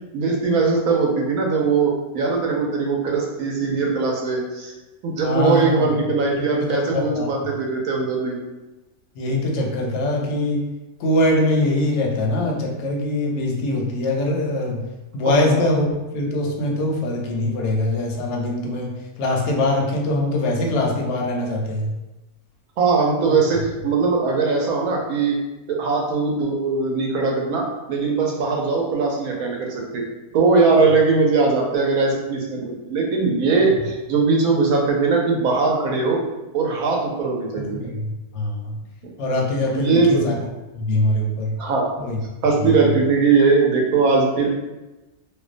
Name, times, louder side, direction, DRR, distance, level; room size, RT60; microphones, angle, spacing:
voice 1, 0.1-4.7 5.0-8.4 15.2-15.6 22.8-25.4 25.7-30.0 30.3-36.2 36.5-37.8 39.7-40.3 41.6-41.9 42.4-44.5, right 4 dB, 75° right, 0 dB, 1.0 m, -20 dB
voice 2, 5.2-5.8 6.6-7.3 9.2-10.7 11.0-14.8 15.1-15.9 16.1-18.9 19.2-21.9 23.3-23.4 37.5-38.7 39.2-40.3 40.7-41.5 42.0-42.2 42.6-42.9, left 1 dB, 65° left, -1 dB, 0.7 m, -22 dB
2.5 x 2.1 x 2.4 m, 1.1 s
omnidirectional pair, 1.6 m